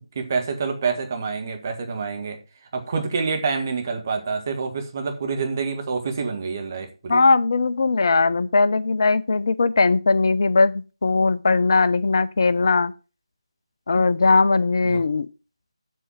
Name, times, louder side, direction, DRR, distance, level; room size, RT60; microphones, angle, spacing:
voice 1, 0.1-2.4 2.7-7.2 14.8-15.0, right 5 dB, 30° right, 1.6 m, -27 dB
voice 2, 7.1-12.9 13.9-15.3, left 3 dB, 45° left, 0.5 m, -19 dB
7.8 x 6.0 x 7.4 m
figure-of-eight pair, 155°, 3 cm